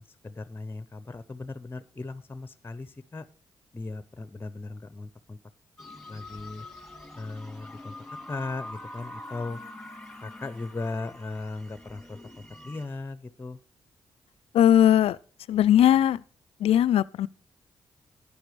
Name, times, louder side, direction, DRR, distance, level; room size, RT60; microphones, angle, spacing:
voice 1, 0.0-3.2 3.7-5.4 6.1-6.7 7.2-7.9 8.3-9.6 10.2-13.6, left 3 dB, 20° left, 0.7 m, -37 dB
sound 1, 5.8-12.9, left 1 dB, 5° left, 2.2 m, -44 dB
voice 2, 14.5-15.2 15.5-16.2 16.6-17.3, left 11 dB, 70° left, 0.4 m, -19 dB
11.5 x 8.5 x 3.1 m
supercardioid pair, 50°, 10 cm